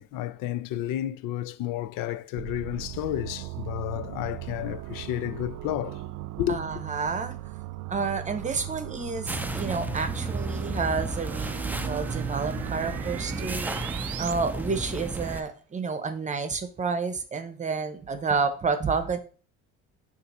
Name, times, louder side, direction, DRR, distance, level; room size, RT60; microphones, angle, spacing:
voice 1, 0.0-6.0 6.4-6.6, left 13 dB, 80° left, 0.5 m, -31 dB
sound 1, 2.4-14.3, right 16 dB, 65° right, 0.5 m, -38 dB
voice 2, 6.5-7.4 7.9-13.6 14.2-19.2, right 4 dB, 20° right, 0.7 m, -30 dB
sound 2, 9.3-15.4, right 2 dB, 5° right, 0.4 m, -33 dB
6.8 x 2.6 x 5.4 m
cardioid pair, 130°, 33 cm